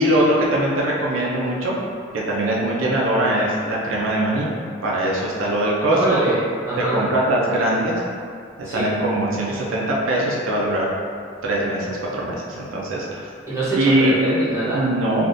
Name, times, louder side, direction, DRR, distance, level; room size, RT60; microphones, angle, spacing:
voice 1, 0.0-1.8 2.1-4.5 4.8-6.0 6.8-8.0 8.6-10.9 11.4-13.3 13.8-14.2 14.7-15.3, right 1 dB, 85° right, -4 dB, 0.6 m, -21 dB
voice 2, 5.9-7.0 8.6-8.9 13.5-14.8, right 2 dB, 15° right, -10 dB, 0.9 m, -24 dB
3.5 x 2.5 x 2.6 m, 2.2 s
head